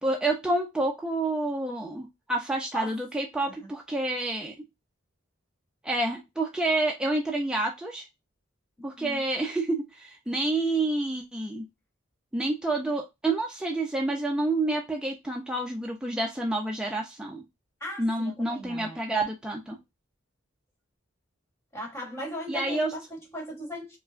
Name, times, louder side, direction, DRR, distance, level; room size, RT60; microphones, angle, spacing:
voice 1, 0.0-4.5 5.8-8.0 8.8-11.7 12.3-17.4 18.0-19.8 22.5-22.9, right 2 dB, 5° right, 0.4 m, -28 dB
voice 2, 8.8-9.2 17.8-19.0 21.7-24.0, equal, 15° left, 1.3 m, -38 dB
4.4 x 2.1 x 2.4 m
head